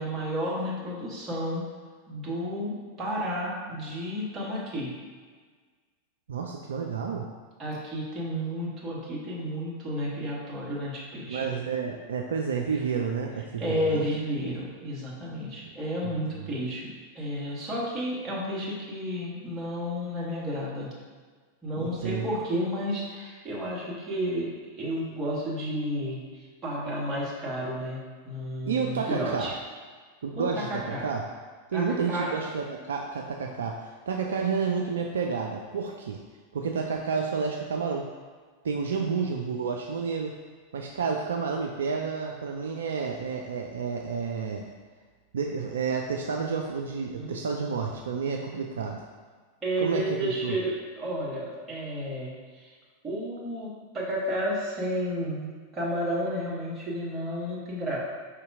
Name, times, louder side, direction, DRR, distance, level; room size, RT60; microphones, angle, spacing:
voice 1, 0.0-1.6 2.1-4.9 7.6-11.5 13.6-16.9 17.1-20.9 21.6-29.6 30.3-31.1 31.7-32.3 47.2-47.3 49.6-52.7 53.0-58.0, equal, 20° right, -5 dB, 1.3 m, -32 dB
voice 2, 6.3-7.3 11.3-14.1 15.6-15.7 16.4-16.5 21.8-22.2 28.7-29.5 30.2-31.2 31.7-36.2 36.5-38.1 38.6-40.4 40.7-44.7 45.3-49.0 49.8-50.5, right 5 dB, 65° right, 1 dB, 0.3 m, -30 dB
5.0 x 2.8 x 3.6 m, 1.5 s
figure-of-eight pair, 90°, 0 cm